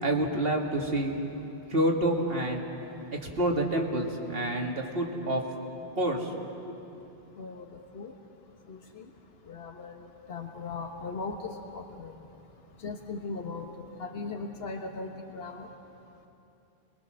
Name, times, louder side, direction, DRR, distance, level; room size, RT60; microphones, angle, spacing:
voice 1, 0.0-1.2 1.7-2.6 3.2-5.4 5.9-6.3 6.7-6.8, right 1 dB, 70° right, 1 dB, 2.6 m, -28 dB
voice 2, 7.4-7.7 7.9-8.1 8.7-9.0 9.5-10.0 10.3-12.1 12.8-13.7 14.0-15.7, left 4 dB, 75° left, 3 dB, 1.6 m, -38 dB
30.0 x 22.5 x 6.4 m, 2.8 s
omnidirectional pair, 1.0 m